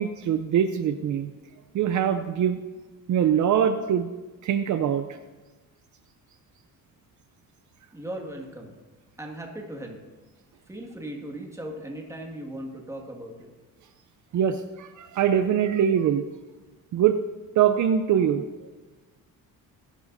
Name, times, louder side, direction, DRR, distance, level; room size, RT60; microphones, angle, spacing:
voice 1, 0.0-1.3 1.7-2.6 3.1-4.1 4.4-5.2 14.3-16.3 16.9-17.2 17.6-18.7, right 9 dB, 55° right, 9 dB, 0.6 m, -23 dB
voice 2, 7.9-8.8 9.2-10.0 10.7-13.5, right 1 dB, 10° right, 1 dB, 1.8 m, -38 dB
19.5 x 11.0 x 2.6 m, 1.2 s
cardioid pair, 135°, 36 cm